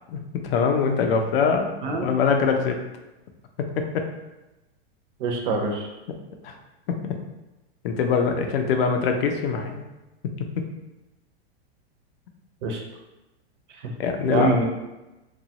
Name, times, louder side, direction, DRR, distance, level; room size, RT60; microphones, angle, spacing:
voice 1, 0.1-2.8 3.8-4.1 6.4-6.6 6.9-7.0 7.8-9.9 10.4-10.6 14.0-14.5, left 5 dB, 60° left, 5 dB, 0.5 m, -23 dB
voice 2, 5.2-5.9 12.6-12.8 14.2-14.6, right 3 dB, 50° right, 2 dB, 0.5 m, -25 dB
2.9 x 2.3 x 2.8 m, 1.0 s
supercardioid pair, 160°, 32 cm